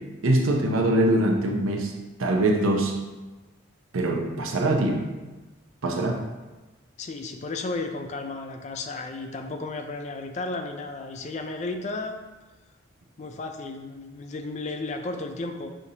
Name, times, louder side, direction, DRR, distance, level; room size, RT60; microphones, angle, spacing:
voice 1, 0.2-1.9 2.2-2.9 3.9-5.0 5.8-6.2, right 1 dB, 90° right, 3 dB, 0.6 m, -23 dB
voice 2, 7.0-12.2 13.2-15.7, left 3 dB, 35° left, 5 dB, 0.3 m, -33 dB
6.4 x 2.7 x 2.7 m, 1.1 s
head